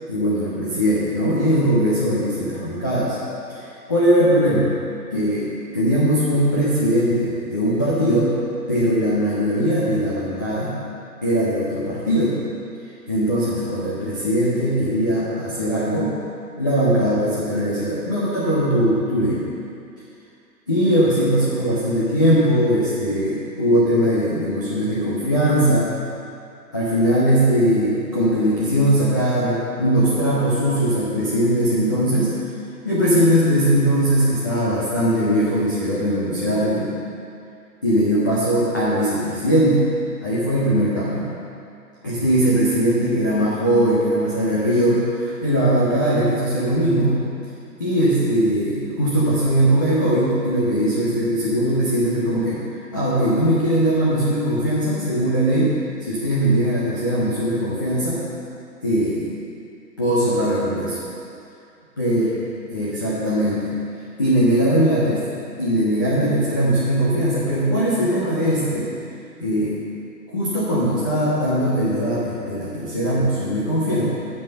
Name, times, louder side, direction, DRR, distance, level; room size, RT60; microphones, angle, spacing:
voice 1, 0.1-3.2 3.5-4.7 5.1-5.5 5.7-8.3 8.7-10.7 11.2-12.4 13.1-16.2 16.6-19.4 20.7-25.9 26.7-32.4 32.8-36.9 37.8-39.8 40.2-41.3 42.0-47.2 47.8-52.6 52.9-55.7 56.0-58.2 58.8-59.3 60.0-61.0 62.0-62.3 62.7-63.7 64.2-65.2 65.6-68.9 69.4-69.7 70.3-74.0, equal, 15° left, -9 dB, 0.5 m, -20 dB
7.4 x 6.4 x 6.6 m, 2.5 s
figure-of-eight pair, 130°, 49 cm